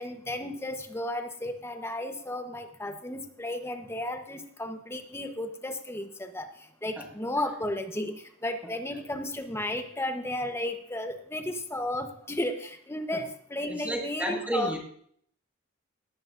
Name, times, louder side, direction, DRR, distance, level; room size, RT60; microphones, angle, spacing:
voice 1, 0.0-14.8, left 1 dB, 10° left, 6 dB, 1.0 m, -34 dB
voice 2, 13.7-14.8, right 1 dB, 10° right, -1 dB, 1.8 m, -31 dB
19.0 x 14.5 x 2.6 m, 0.64 s
head